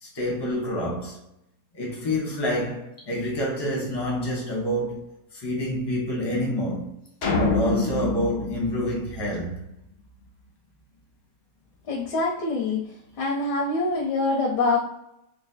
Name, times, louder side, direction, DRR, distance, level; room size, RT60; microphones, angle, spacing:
voice 1, 0.0-1.2 1.7-5.0 5.3-6.9 7.4-9.6, equal, 25° left, 0.6 m, -27 dB
sound 1, 7.2-9.7, left 3 dB, 55° left, 0.7 m, -26 dB
voice 2, 11.9-14.8, left 3 dB, 85° left, 1.3 m, -25 dB
3.9 x 2.5 x 2.6 m
omnidirectional pair, 1.8 m